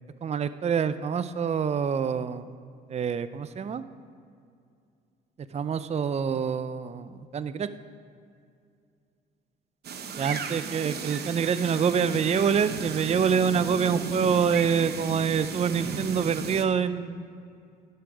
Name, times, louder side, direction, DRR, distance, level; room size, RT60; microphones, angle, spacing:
voice 1, 0.2-2.5 2.9-3.8 5.5-7.7 10.2-17.3, right 7 dB, 35° right, 13 dB, 0.5 m, -26 dB
sound 1, 9.8-16.6, right 6 dB, 55° right, 0.9 m, -35 dB
10.5 x 6.5 x 5.2 m, 2.4 s
supercardioid pair, 60°, 20 cm